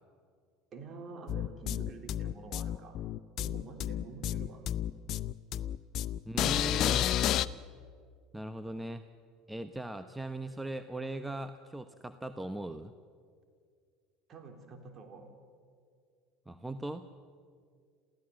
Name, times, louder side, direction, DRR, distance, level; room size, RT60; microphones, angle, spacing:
voice 1, 0.7-3.0 3.4-4.6 14.3-15.3, right 4 dB, 40° right, 4 dB, 3.8 m, -47 dB
sound 1, 1.3-7.5, left 11 dB, 55° left, 0.6 m, -31 dB
voice 2, 6.3-7.1 8.3-9.0 9.5-12.9 16.5-17.1, right 2 dB, 10° right, 10 dB, 1.0 m, -39 dB
27.5 x 16.0 x 7.8 m, 2.1 s
hypercardioid pair, 75°, 0 cm